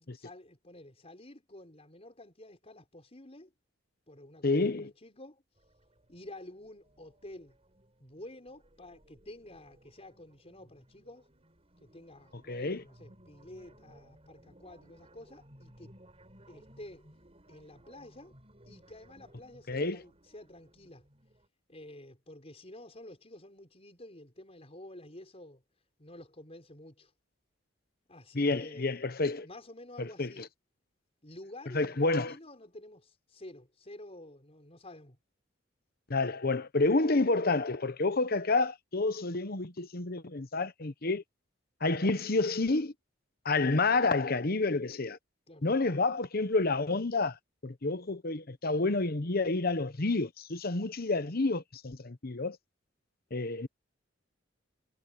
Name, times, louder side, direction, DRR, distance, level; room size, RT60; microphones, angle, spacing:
voice 1, 0.0-3.5 4.1-5.4 6.1-7.6 8.0-11.3 11.8-15.9 16.5-17.1 17.5-18.4 18.7-21.1 21.7-25.6 26.0-27.1 28.1-29.0 29.4-30.4 31.2-35.2 45.5-45.7, left 1 dB, 30° left, 6.1 m, -50 dB
voice 2, 4.4-4.9 12.5-12.8 19.7-20.0 28.3-29.5 30.0-30.3 31.7-32.3 36.1-41.2 41.8-42.9 43.4-45.2 45.6-47.4 47.6-52.6 53.3-53.7, left 3 dB, 50° left, 1.1 m, -29 dB
sound 1, 5.6-21.5, right 1 dB, 30° right, 6.6 m, -60 dB
head